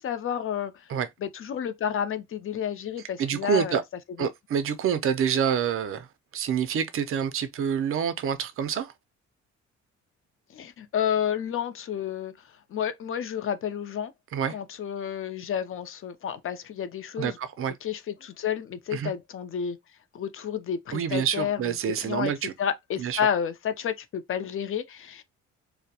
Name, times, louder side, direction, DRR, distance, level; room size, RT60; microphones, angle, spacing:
voice 1, 0.0-0.7 1.2-3.8 4.2-4.3 10.5-12.3 12.7-14.1 14.5-17.4 17.8-19.8 20.1-22.3 22.6-25.2, left 8 dB, 45° left, 0.5 m, -30 dB
voice 2, 3.2-3.8 4.2-6.1 6.3-8.9 14.3-14.6 17.2-17.7 18.9-19.1 20.9-22.5 23.0-23.2, right 8 dB, 45° right, 0.4 m, -27 dB
2.2 x 2.0 x 2.7 m
cardioid pair, 90°, 30 cm